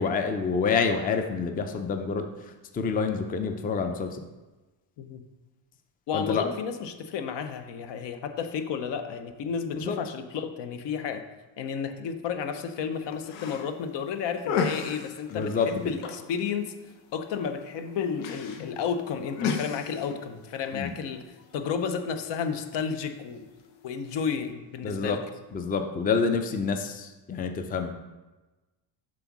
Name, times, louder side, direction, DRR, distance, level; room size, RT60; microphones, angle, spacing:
voice 1, 0.0-2.3 2.7-4.2 6.1-6.4 9.8-10.0 15.3-15.7 20.7-20.9 24.8-25.2 25.5-27.9, left 5 dB, 20° left, 6 dB, 0.5 m, -27 dB
voice 2, 6.1-11.2 11.6-16.7 17.1-21.2 21.5-23.4 23.8-25.2, left 6 dB, 65° left, 7 dB, 0.9 m, -32 dB
sound 1, 12.9-24.5, left 5 dB, 90° left, 1.0 m, -37 dB
7.8 x 3.6 x 6.0 m, 1.2 s
cardioid pair, 115°, 46 cm